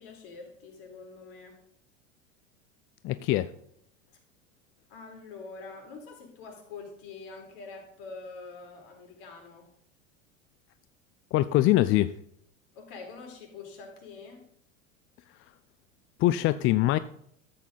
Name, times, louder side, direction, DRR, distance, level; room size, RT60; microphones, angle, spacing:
voice 1, 0.0-1.6 4.9-9.7 12.7-14.5, left 4 dB, 55° left, 2 dB, 4.2 m, -45 dB
voice 2, 3.0-3.5 11.3-12.1 16.2-17.0, left 15 dB, 35° left, 14 dB, 0.4 m, -23 dB
13.5 x 8.2 x 3.9 m, 0.69 s
hypercardioid pair, 85°, 39 cm